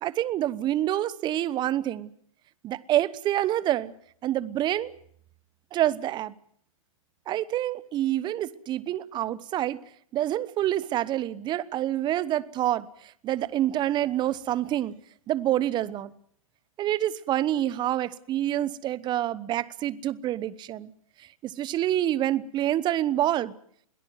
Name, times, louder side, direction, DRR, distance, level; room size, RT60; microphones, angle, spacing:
voice 1, 0.0-2.1 2.6-3.9 4.2-4.9 5.7-6.3 7.3-9.8 10.1-14.9 15.3-16.1 16.8-20.9 21.4-23.5, right 13 dB, 25° right, 1.0 m, -27 dB
22.0 x 18.0 x 7.8 m
hypercardioid pair, 115°, 18 cm